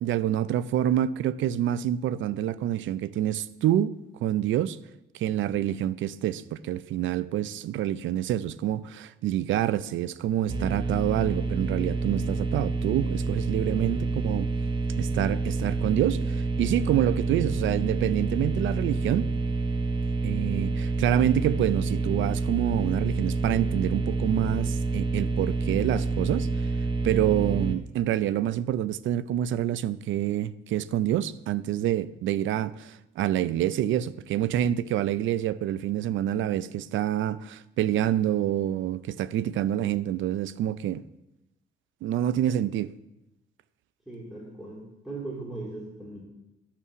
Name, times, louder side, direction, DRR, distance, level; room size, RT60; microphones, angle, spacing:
voice 1, 0.0-3.9 4.2-4.8 5.1-14.5 15.0-19.3 20.2-26.5 27.0-41.0 42.0-42.9, right 11 dB, 75° right, 0.5 m, -27 dB
sound 1, 10.5-27.7, right 3 dB, 25° right, 0.9 m, -28 dB
voice 2, 13.7-14.0 44.1-46.2, right 2 dB, ahead, 2.9 m, -39 dB
12.5 x 5.8 x 5.8 m
cardioid pair, 90°, 20 cm